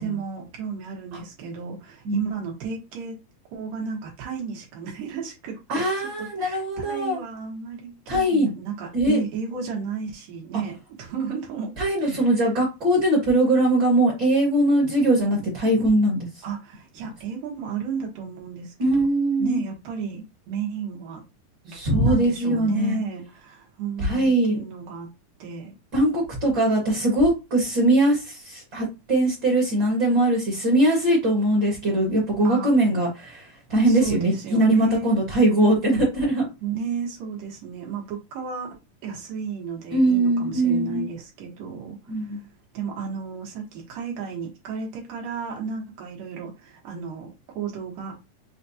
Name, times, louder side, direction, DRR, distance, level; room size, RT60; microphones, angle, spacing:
voice 1, 0.0-3.2 3.5-5.9 6.2-11.7 12.0-12.3 16.4-19.1 19.4-21.2 21.6-25.1 25.4-25.7 32.4-32.7 33.9-35.1 36.6-38.7 39.0-42.4 42.7-48.3, right 6 dB, 75° right, 2.9 m, -33 dB
voice 2, 5.7-7.2 8.1-8.5 8.9-9.2 11.8-16.3 18.8-19.6 21.7-23.0 24.0-24.6 25.9-36.5 39.9-41.1 42.1-42.4, right 1 dB, 45° right, 1.6 m, -21 dB
6.5 x 2.3 x 2.7 m
omnidirectional pair, 3.9 m